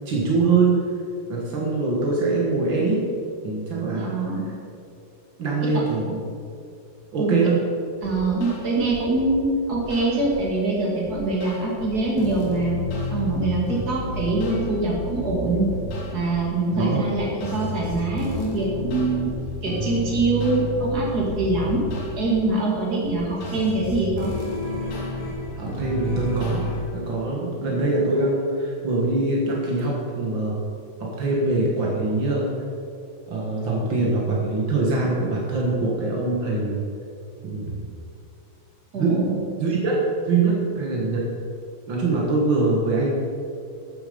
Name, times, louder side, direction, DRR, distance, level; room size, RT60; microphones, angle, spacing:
voice 1, 0.0-0.8 1.3-3.0 3.4-4.5 5.4-6.2 7.1-7.7 16.7-17.0 25.5-30.6 31.0-32.6 33.3-36.8 37.4-37.8 38.9-41.3 41.9-43.1, right 3 dB, 75° right, -3 dB, 1.1 m, -23 dB
voice 2, 3.9-4.4 7.2-7.3 8.0-12.8 13.1-15.6 16.1-19.3 19.6-21.8 22.1-24.3 38.9-39.4, right 2 dB, 30° right, -3 dB, 2.0 m, -24 dB
sound 1, 8.0-9.3 9.7-10.4 11.0-26.8, left 1 dB, 55° left, 3.1 m, -31 dB
13.0 x 9.0 x 5.3 m, 2.5 s
omnidirectional pair, 4.9 m